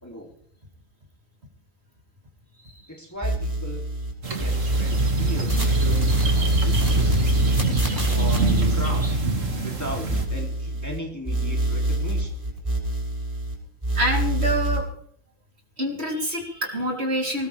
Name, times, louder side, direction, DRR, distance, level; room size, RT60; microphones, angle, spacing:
voice 1, 0.0-0.3 2.9-3.9 4.4-7.4 8.1-9.1 9.5-12.5, equal, 10° left, -1 dB, 3.2 m, -37 dB
sound 1, 3.2-4.1 4.4-11.0 11.2-13.5 13.8-14.8, right 1 dB, 15° right, 6.3 m, -24 dB
sound 2, 4.2-10.3, right 3 dB, 70° right, 2.7 m, -26 dB
voice 2, 13.9-14.8 15.8-17.5, equal, 50° right, -1 dB, 4.0 m, -26 dB
20.0 x 19.5 x 3.6 m, 0.64 s
omnidirectional pair, 1.4 m